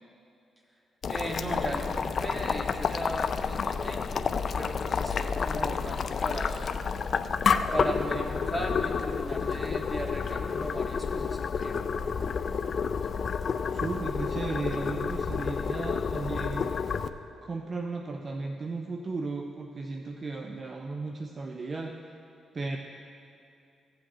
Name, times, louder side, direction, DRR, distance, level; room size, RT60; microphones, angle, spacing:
Boiling, 1.0-17.1, left 6 dB, 55° left, 0.4 m, -30 dB
voice 1, 1.1-6.7 7.7-11.8, equal, 15° right, 1 dB, 1.6 m, -37 dB
voice 2, 13.7-16.7 17.4-22.0 22.5-22.8, right 3 dB, 40° right, 3 dB, 0.6 m, -35 dB
16.0 x 7.7 x 3.1 m, 2.6 s
supercardioid pair, 65°, 0 cm